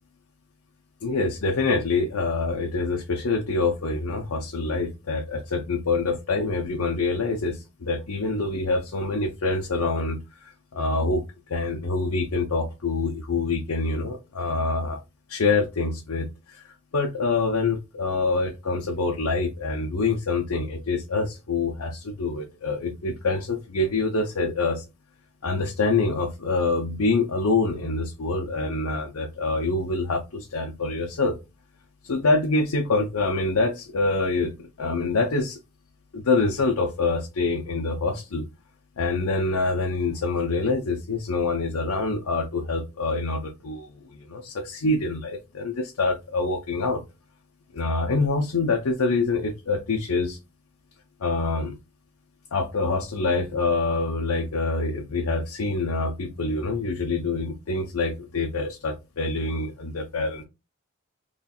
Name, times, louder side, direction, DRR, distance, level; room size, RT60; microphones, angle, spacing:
voice 1, 1.0-11.2 11.5-15.0 15.3-16.6 16.9-24.8 25.4-31.4 32.0-35.6 36.1-38.5 39.0-47.0 47.7-50.4 51.2-51.8 52.5-60.4, left 3 dB, 85° left, 1 dB, 0.6 m, -26 dB
3.1 x 2.4 x 4.1 m, 0.25 s
head